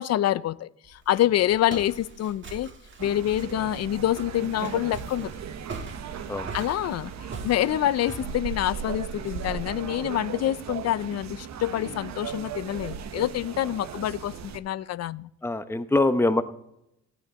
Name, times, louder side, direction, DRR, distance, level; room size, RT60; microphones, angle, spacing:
voice 1, 0.0-2.7 3.0-5.3 6.5-15.3, left 12 dB, 60° left, 18 dB, 0.5 m, -26 dB
Walk footsteps, 0.8-9.5, right 3 dB, 40° right, 1.4 m, -43 dB
sound 1, 3.0-14.6, right 7 dB, 65° right, 0.9 m, -37 dB
voice 2, 15.4-16.4, left 2 dB, 10° left, 10 dB, 0.8 m, -23 dB
14.0 x 9.2 x 4.1 m, 0.82 s
cardioid pair, 90°, 30 cm